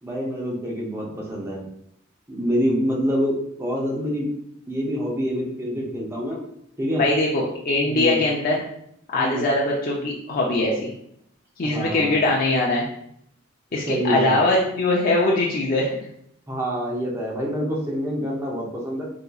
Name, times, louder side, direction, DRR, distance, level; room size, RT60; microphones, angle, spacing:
voice 1, 0.0-1.7 2.3-4.3 4.7-6.4 6.8-7.0 7.8-8.2 9.2-9.4 11.6-12.2 13.9-14.4 16.5-19.0, equal, 10° right, -4 dB, 0.7 m, -26 dB
voice 2, 6.9-8.6 9.1-10.9 11.6-12.9 13.7-15.9, left 2 dB, 40° left, -4 dB, 0.4 m, -21 dB
3.8 x 2.8 x 2.3 m, 0.71 s
head